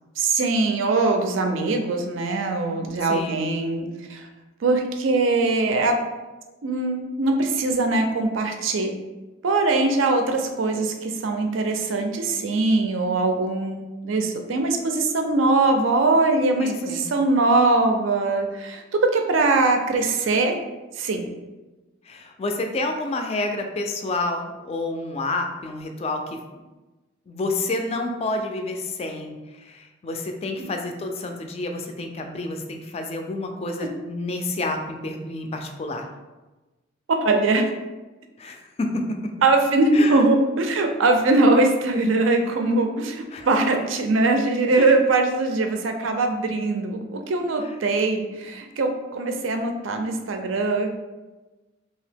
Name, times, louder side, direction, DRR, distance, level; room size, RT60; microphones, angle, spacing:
voice 1, 0.2-4.3 4.6-6.0 6.6-8.9 9.4-20.6 20.9-21.2 30.6-30.7 37.2-37.7 39.4-50.9, right 2 dB, 75° right, 5 dB, 0.4 m, -22 dB
voice 2, 3.0-3.5 16.6-17.1 22.1-26.4 27.3-36.1 38.4-39.2 39.9-40.2 43.3-43.5 44.7-44.9, left 2 dB, 30° left, 4 dB, 0.3 m, -29 dB
2.8 x 2.8 x 3.4 m, 1.2 s
head